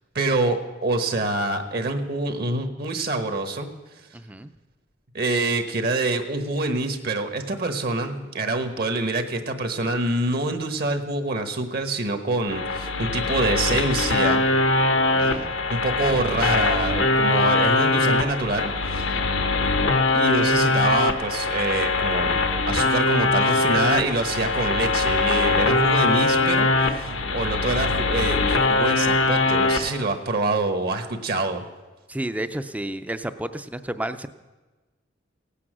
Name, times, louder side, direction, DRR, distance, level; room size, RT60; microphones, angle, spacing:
voice 1, 0.1-3.7 5.1-14.4 15.2-15.4 15.7-19.1 20.1-22.4 22.7-31.6, right 2 dB, 55° right, 7 dB, 1.1 m, -26 dB
voice 2, 4.1-4.5 15.1-15.5 19.1-19.5 27.1-27.4 32.1-34.3, right 1 dB, 10° right, 11 dB, 0.5 m, -32 dB
sound 1, 12.5-29.9, left 3 dB, 80° left, 1.1 m, -22 dB
17.0 x 8.5 x 6.2 m, 1.2 s
head